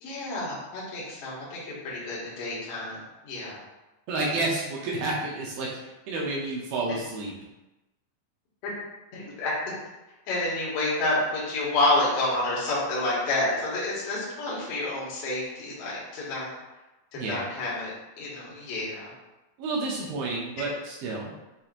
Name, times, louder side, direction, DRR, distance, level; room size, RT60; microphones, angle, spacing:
voice 1, 0.0-3.0 3.2-3.6 8.6-8.7 9.1-9.5 10.3-16.5 17.1-17.9 18.2-19.1, left 2 dB, 70° left, -7 dB, 1.5 m, -29 dB
voice 2, 4.1-5.7 6.1-7.3 17.2-17.4 19.6-21.3, right 2 dB, 80° right, -3 dB, 2.1 m, -30 dB
7.4 x 2.7 x 2.5 m, 1.0 s
omnidirectional pair, 5.0 m